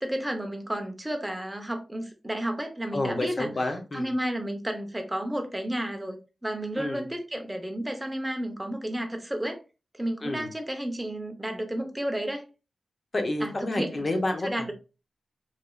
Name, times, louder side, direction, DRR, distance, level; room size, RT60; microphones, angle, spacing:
voice 1, 0.0-3.5 3.9-6.2 6.4-9.6 9.9-12.4 13.4-14.0 14.4-14.7, right 1 dB, 10° right, 0.5 m, -32 dB
voice 2, 2.9-4.1 6.8-7.0 10.2-10.5 13.1-14.7, left 2 dB, 35° left, 0.6 m, -29 dB
3.1 x 2.3 x 2.3 m
wide cardioid pair, 155°, 0 cm